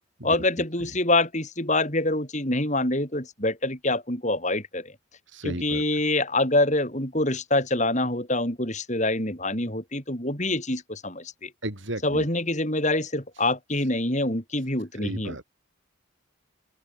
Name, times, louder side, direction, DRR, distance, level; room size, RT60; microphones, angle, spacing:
voice 1, 0.2-4.9 5.4-11.5 12.0-15.5, left 2 dB, 35° left, 6.2 m, -25 dB
voice 2, 5.3-5.8 11.6-12.3 15.0-15.5, right 1 dB, 65° right, 7.3 m, -34 dB
open air
head